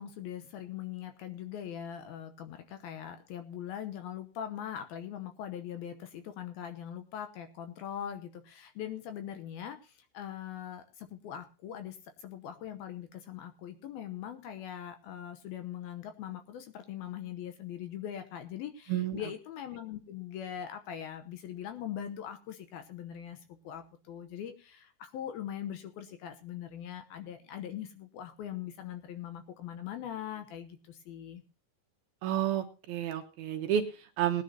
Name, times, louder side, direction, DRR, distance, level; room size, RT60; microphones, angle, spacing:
voice 1, 0.0-31.4, left 10 dB, 70° left, 8 dB, 2.5 m, -41 dB
voice 2, 18.9-19.2 32.2-34.4, right 10 dB, 75° right, 6 dB, 2.5 m, -31 dB
20.0 x 10.5 x 2.8 m, 0.34 s
omnidirectional pair, 5.0 m